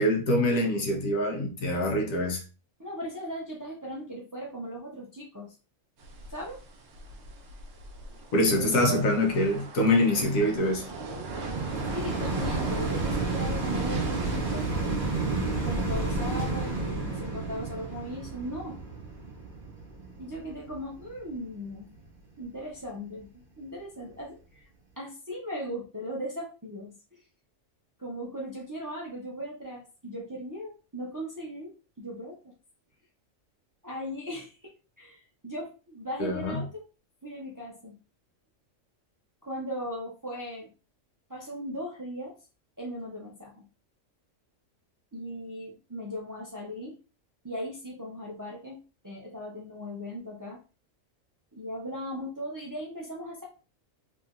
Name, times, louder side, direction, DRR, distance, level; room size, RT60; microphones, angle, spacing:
voice 1, 0.0-2.4 8.3-10.8 36.2-36.6, left 1 dB, 85° left, 1.3 m, -25 dB
voice 2, 2.8-5.5 6.3-6.6 8.6-8.9 11.9-15.0 15.6-18.8 20.2-21.9 22.4-23.3 23.6-24.7 25.0-26.9 28.0-31.7 32.0-32.5 33.8-34.7 35.0-36.8 37.2-38.0 39.4-40.7 41.3-42.3 42.8-43.7 45.1-47.0 47.4-50.6 51.5-53.4, equal, 25° right, 0.5 m, -38 dB
sound 1, 6.0-17.0, right 2 dB, 65° right, 0.9 m, -40 dB
sound 2, 10.1-21.4 22.0-22.1, right 3 dB, 40° right, 1.0 m, -31 dB
3.0 x 2.9 x 2.4 m
omnidirectional pair, 1.4 m